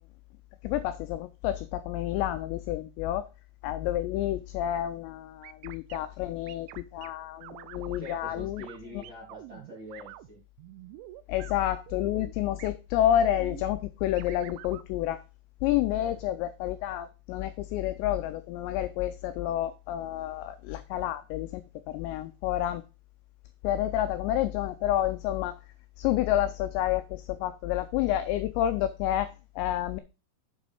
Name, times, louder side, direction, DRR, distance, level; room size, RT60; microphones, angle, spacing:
voice 1, 0.6-3.3 3.6-8.6 8.9-9.0 11.3-15.2 15.6-22.8 23.6-25.6 26.0-30.0, left 12 dB, 90° left, 2.5 m, -29 dB
sound 1, 5.4-6.0 6.5-7.1 7.4-8.2 8.6-8.8 9.0-10.3 10.6-11.5 11.9-12.3 12.6-12.7 13.2-13.7 14.2-14.8, right 16 dB, 80° right, 2.8 m, -46 dB
voice 2, 8.0-10.4 16.0-16.1, equal, 30° right, 2.9 m, -45 dB
7.7 x 5.1 x 5.3 m
omnidirectional pair, 5.6 m